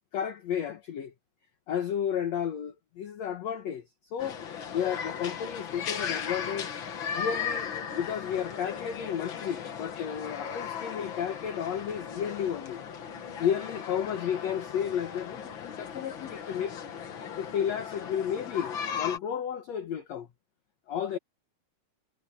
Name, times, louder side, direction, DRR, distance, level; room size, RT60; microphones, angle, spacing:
voice 1, 0.1-1.1 1.7-4.4 4.7-6.7 7.1-12.8 13.4-16.8 17.4-20.3 20.9-21.2, left 9 dB, 65° left, 1.7 m, -32 dB
sound 1, 4.2-19.2, left 7 dB, 85° left, 1.0 m, -37 dB
omnidirectional pair, 4.6 m